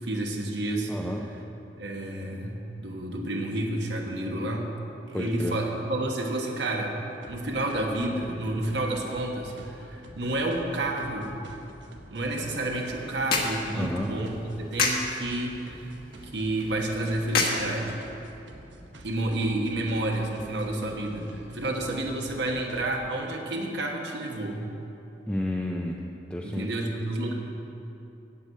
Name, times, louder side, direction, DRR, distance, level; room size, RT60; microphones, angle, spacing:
voice 1, 0.0-0.9 1.8-4.7 5.1-7.0 7.3-11.4 12.1-15.9 16.3-18.0 19.0-24.6 26.4-27.3, right 1 dB, 70° right, 0 dB, 1.3 m, -30 dB
voice 2, 0.9-1.2 5.1-5.6 13.8-14.1 25.3-26.0 26.3-26.7, left 1 dB, 5° left, -1 dB, 0.5 m, -31 dB
sound 1, 7.1-23.0, right 1 dB, 85° right, 1.1 m, -48 dB
sound 2, 12.4-18.4, left 3 dB, 55° left, 1.4 m, -32 dB
8.3 x 7.9 x 8.5 m, 2.9 s
head